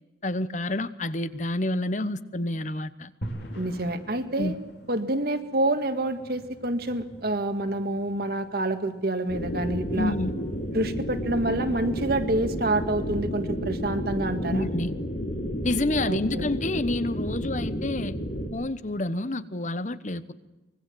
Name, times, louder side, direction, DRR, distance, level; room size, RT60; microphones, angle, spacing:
voice 1, 0.2-3.1 4.4-4.6 9.9-10.3 14.5-14.9 15.6-18.2 18.5-20.3, left 2 dB, 40° left, 14 dB, 1.0 m, -28 dB
sound 1, 3.2-13.5, equal, 65° left, 3.5 m, -46 dB
voice 2, 3.6-4.5 4.9-10.1 10.7-14.7 16.1-16.4, right 1 dB, 55° right, 7 dB, 1.9 m, -27 dB
sound 2, 9.3-18.5, equal, 80° left, 5.1 m, -31 dB
25.0 x 21.5 x 7.8 m, 1.1 s
head